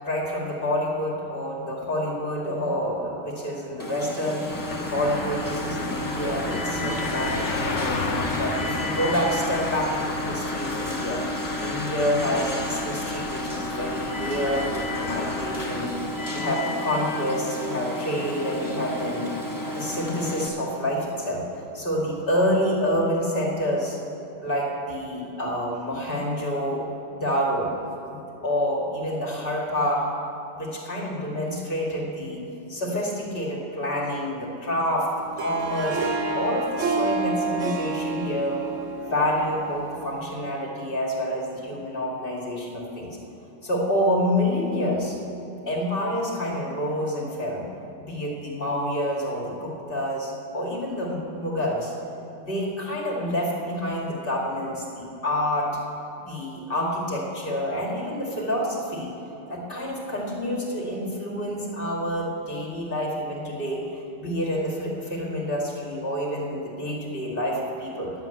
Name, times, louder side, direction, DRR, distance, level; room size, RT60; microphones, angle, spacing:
voice 1, 0.0-8.0 8.4-11.2 11.6-16.0 16.3-19.3 19.7-21.4 21.7-24.0 24.4-26.8 27.1-27.7 28.1-30.1 30.5-32.4 32.7-36.0 36.3-38.6 39.0-43.2 43.6-45.2 45.6-47.6 48.0-51.9 52.4-55.7 56.2-59.1 59.5-68.1, equal, 45° left, -3 dB, 2.2 m, -28 dB
Alarm, 3.8-20.5, left 1 dB, 15° left, 1.0 m, -31 dB
sound 1, 4.5-15.9, left 3 dB, 70° left, 1.2 m, -33 dB
Harp, 35.2-40.4, right 3 dB, 75° right, 1.3 m, -29 dB
10.5 x 7.7 x 8.9 m, 2.9 s
omnidirectional pair, 1.3 m